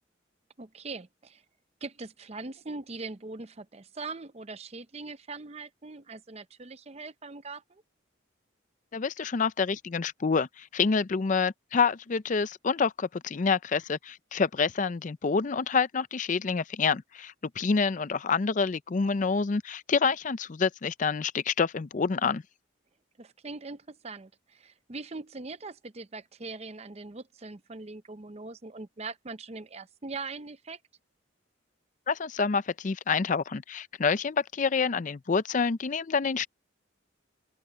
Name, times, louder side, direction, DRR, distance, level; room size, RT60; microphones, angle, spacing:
voice 1, 0.6-1.4 1.8-7.8 23.2-30.8, right 3 dB, 35° right, 0.7 m, -41 dB
voice 2, 8.9-22.4 32.1-36.5, left 5 dB, 40° left, 0.4 m, -27 dB
open air
head